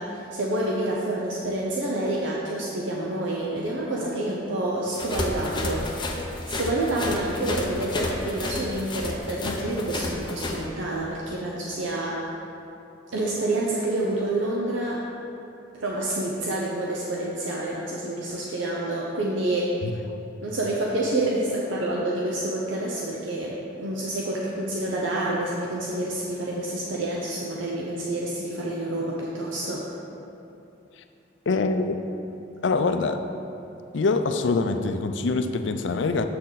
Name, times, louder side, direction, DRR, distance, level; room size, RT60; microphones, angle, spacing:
voice 1, 0.0-5.8 6.5-12.3 13.1-15.0 15.7-19.7 20.4-29.9, right 1 dB, 85° right, -4 dB, 0.8 m, -28 dB
sound 1, 4.9-10.6, left 2 dB, 25° left, 0.6 m, -31 dB
voice 2, 31.5-32.0 32.3-33.2 33.9-36.3, left 3 dB, 75° left, 8 dB, 0.5 m, -24 dB
7.6 x 6.5 x 4.0 m, 2.8 s
head